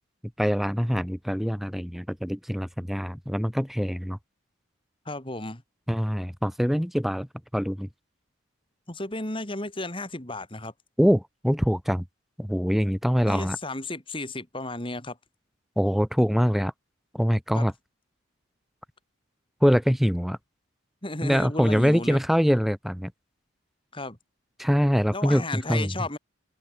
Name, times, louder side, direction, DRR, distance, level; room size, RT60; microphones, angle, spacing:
voice 1, 0.4-4.2 5.9-7.3 7.5-7.9 11.0-12.0 12.4-13.6 15.8-16.7 17.1-17.7 19.6-20.4 21.2-23.1 24.6-25.9, equal, ahead, 3.6 m, -24 dB
voice 2, 5.1-5.6 8.9-10.7 13.3-15.2 17.5-17.7 21.0-22.2 23.9-24.2 25.1-26.2, left 2 dB, 25° left, 3.6 m, -33 dB
head